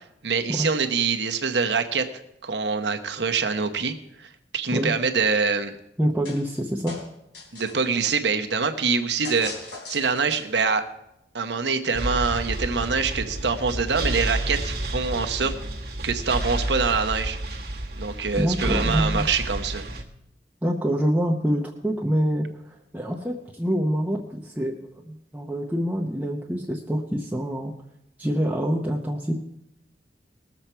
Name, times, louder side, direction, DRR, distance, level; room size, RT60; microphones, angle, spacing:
voice 1, 0.2-2.1 2.4-5.8 7.5-9.5 9.9-10.8 11.3-15.5 16.0-17.4 18.0-19.8, right 5 dB, 75° right, 6 dB, 1.0 m, -25 dB
voice 2, 6.0-7.0 18.4-19.3 20.6-24.8 25.1-27.7 28.2-29.3, equal, 10° right, -2 dB, 0.8 m, -26 dB
sound 1, 6.2-6.6 6.9-7.9 9.2-10.7, left 3 dB, 75° left, 3.2 m, -39 dB
sound 2, 11.9-20.0, right 1 dB, 60° right, 1.4 m, -30 dB
19.5 x 7.3 x 4.5 m, 0.83 s
head